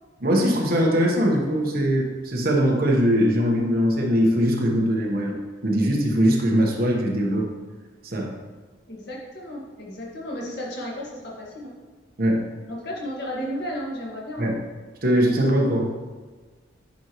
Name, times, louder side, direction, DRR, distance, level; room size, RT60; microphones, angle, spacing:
voice 1, 0.2-5.4 5.6-7.5 8.0-8.3 12.2-12.4 14.4-14.5 15.0-15.9, equal, 50° right, 0 dB, 1.1 m, -21 dB
voice 2, 8.9-11.7 12.7-14.5, equal, 60° left, -3 dB, 1.8 m, -33 dB
9.6 x 5.3 x 3.0 m, 1.4 s
head